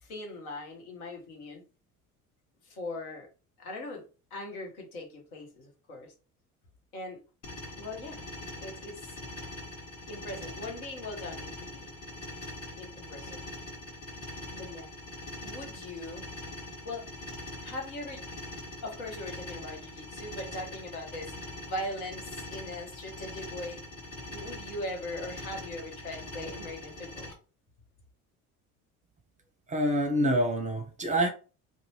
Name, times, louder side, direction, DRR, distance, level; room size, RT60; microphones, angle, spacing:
voice 1, 0.0-1.6 2.6-3.3 3.6-4.0 4.3-6.1 6.9-7.2 7.8-8.2 8.6-9.2 10.1-11.9 12.7-13.4 14.5-14.9 15.4-16.3 16.8-17.2 17.6-18.2 18.8-21.3 21.6-23.8 24.3-27.3, left 1 dB, 75° left, 1.0 m, -40 dB
sound 1, 7.4-27.3, left 1 dB, 35° left, 1.1 m, -42 dB
voice 2, 29.7-31.3, right 1 dB, 15° right, 0.6 m, -26 dB
2.6 x 2.1 x 3.0 m
figure-of-eight pair, 60°, 44 cm